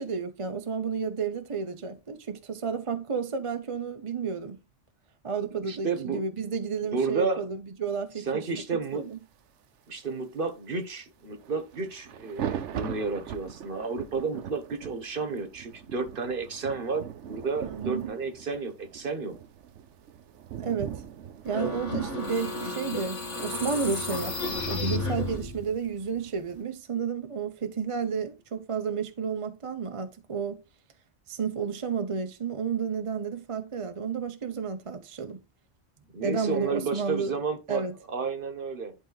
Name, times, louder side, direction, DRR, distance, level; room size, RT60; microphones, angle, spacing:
voice 1, 0.0-4.6 5.2-8.5 8.9-9.2 17.6-18.1 20.6-21.0 21.4-30.6 31.3-35.4 36.2-37.3 37.7-37.9, right 6 dB, 35° right, 0.6 m, -31 dB
voice 2, 5.5-6.3 6.8-7.5 8.2-9.1 9.9-19.3 36.1-38.9, right 4 dB, 50° right, 1.2 m, -32 dB
sound 1, 11.4-26.6, right 9 dB, 80° right, 1.0 m, -41 dB
sound 2, 21.5-25.7, left 2 dB, 80° left, 2.0 m, -32 dB
11.0 x 3.8 x 3.9 m
omnidirectional pair, 1.2 m